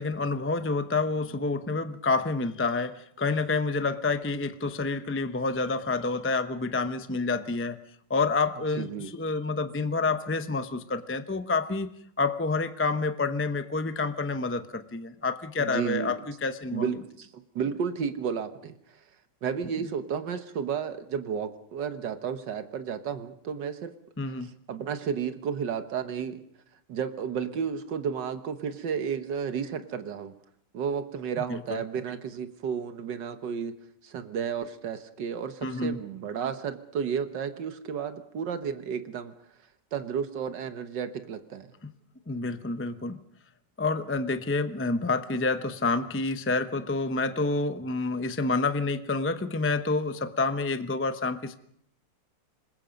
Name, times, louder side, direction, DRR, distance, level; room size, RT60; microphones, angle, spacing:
voice 1, 0.0-7.8 8.1-11.9 12.2-16.9 24.2-24.5 31.5-31.8 35.6-36.0 41.8-41.9 42.3-43.2 43.8-51.6, left 3 dB, 15° left, 10 dB, 0.4 m, -28 dB
voice 2, 8.7-9.1 15.6-16.2 16.7-17.3 17.6-19.0 19.4-23.9 24.2-26.4 26.9-30.3 30.7-33.8 34.0-39.3 39.9-41.7, right 7 dB, 80° right, 9 dB, 1.8 m, -32 dB
26.0 x 21.0 x 5.2 m, 0.70 s
omnidirectional pair, 1.9 m